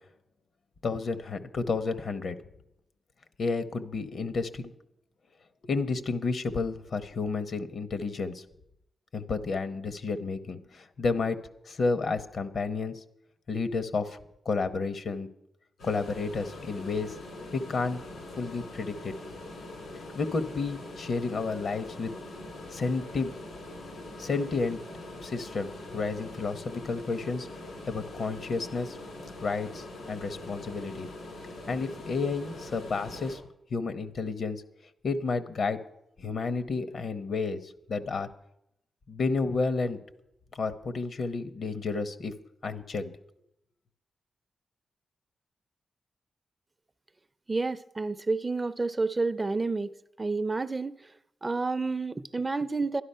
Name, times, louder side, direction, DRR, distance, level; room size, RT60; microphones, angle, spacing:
voice 1, 0.8-2.4 3.4-4.7 5.6-8.4 9.1-11.4 11.6-13.0 13.5-14.2 14.4-15.3 15.8-17.2 17.5-18.0 18.4-19.2 20.1-22.1 22.7-23.3 24.2-24.8 25.2-27.5 27.9-29.0 29.4-31.1 31.7-33.4 33.7-34.6 35.0-35.8 36.2-38.3 39.1-40.0 40.5-42.3 42.6-43.1, left 4 dB, 60° left, 0.9 m, -31 dB
sound 1, 15.8-33.4, left 2 dB, 85° left, 4.6 m, -43 dB
voice 2, 47.5-51.1 51.4-53.0, right 3 dB, 25° right, 0.5 m, -30 dB
11.5 x 11.5 x 5.6 m
cardioid pair, 95°, 0 cm